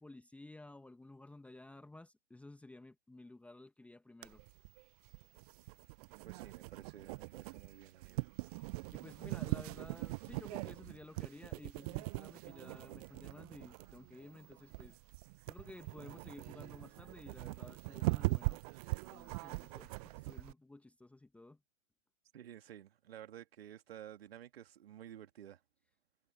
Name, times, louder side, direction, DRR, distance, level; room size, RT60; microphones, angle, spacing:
voice 1, 0.0-4.4 8.5-15.0 15.5-18.6 19.1-21.6, left 2 dB, 5° left, 1.8 m, -54 dB
sound 1, 4.2-20.5, right 23 dB, 30° right, 1.0 m, -41 dB
voice 2, 6.2-8.3 22.3-25.6, right 11 dB, 55° right, 2.6 m, -52 dB
figure-of-eight pair, 110°, 36 cm